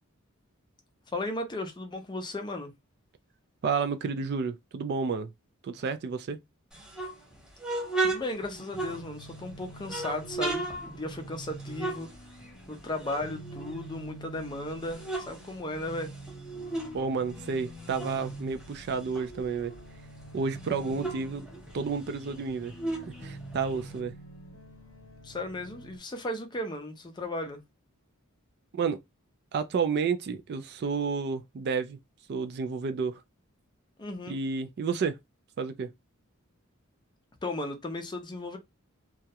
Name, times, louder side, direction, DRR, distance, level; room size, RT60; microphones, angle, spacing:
voice 1, 1.1-2.7 8.0-12.1 12.7-16.2 25.2-27.6 34.0-34.4 37.4-38.6, left 1 dB, 20° left, 0.5 m, -35 dB
voice 2, 3.6-5.3 5.6-6.4 16.9-19.7 20.3-21.5 21.7-22.7 23.1-24.1 28.7-29.0 29.5-32.0 32.3-33.2 34.3-35.2 35.6-35.9, right 5 dB, 50° right, 0.3 m, -31 dB
sound 1, 6.7-9.4 9.8-12.7 13.0-14.3 14.7-17.0 17.3-19.9 20.2-20.3 20.6-24.0, right 2 dB, 5° right, 1.1 m, -36 dB
sound 2, 8.7-26.0, right 1 dB, 75° left, 0.8 m, -46 dB
2.3 x 2.0 x 2.8 m
head